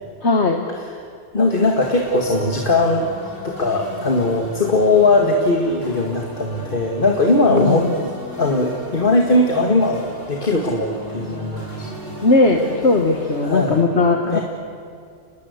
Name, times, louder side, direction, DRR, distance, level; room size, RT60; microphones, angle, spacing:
voice 1, 0.2-0.6 7.5-7.9 12.2-14.4, left 3 dB, 65° left, 3 dB, 1.8 m, -18 dB
voice 2, 1.3-3.1 3.4-8.1 8.4-11.9 13.4-13.8 14.2-14.4, left 2 dB, 45° left, 2 dB, 2.1 m, -19 dB
sound 1, 1.5-13.8, equal, 85° left, 7.1 m, -36 dB
29.5 x 21.0 x 8.2 m, 2.3 s
omnidirectional pair, 1.3 m